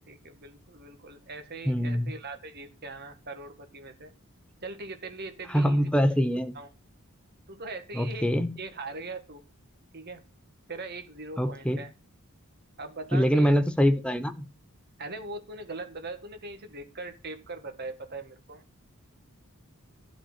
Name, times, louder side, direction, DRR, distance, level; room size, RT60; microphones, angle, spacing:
voice 1, 0.1-4.1 4.6-6.0 6.5-6.7 7.5-8.2 8.6-9.4 9.9-10.2 10.7-11.9 12.8-13.5 15.0-18.6, right 3 dB, 45° right, 1.7 m, -40 dB
voice 2, 1.7-2.1 5.5-6.6 7.9-8.5 11.4-11.8 13.1-14.5, equal, 5° left, 0.9 m, -24 dB
12.0 x 4.3 x 7.3 m
head